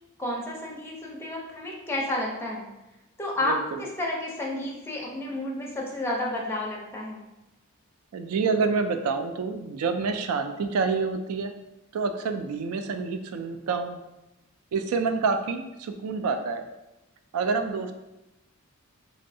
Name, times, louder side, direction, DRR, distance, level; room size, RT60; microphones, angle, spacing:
voice 1, 0.2-2.6 3.2-7.2, left 1 dB, 10° left, -3 dB, 0.5 m, -31 dB
voice 2, 3.4-3.8 8.1-11.5 11.9-14.0 14.7-16.6 17.3-17.9, right 4 dB, 80° right, 7 dB, 0.3 m, -27 dB
3.0 x 2.6 x 2.6 m, 0.98 s
head